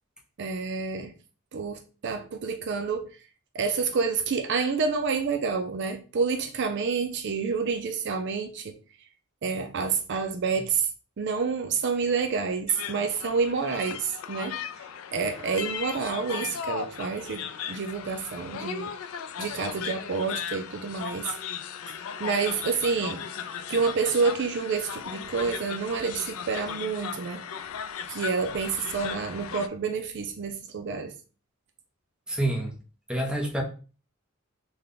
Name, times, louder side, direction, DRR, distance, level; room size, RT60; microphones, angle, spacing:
voice 1, 0.4-1.1 1.5-3.2 3.5-8.7 9.4-10.9 11.2-14.5 15.1-18.9 19.4-21.3 22.2-23.2 23.7-27.4 28.1-31.1, right 5 dB, 55° right, 0.4 m, -28 dB
sound 1, 12.7-29.7, left 8 dB, 80° left, 0.4 m, -37 dB
voice 2, 32.3-32.7 33.1-33.6, right 1 dB, 5° right, 0.6 m, -27 dB
3.3 x 2.2 x 3.8 m
head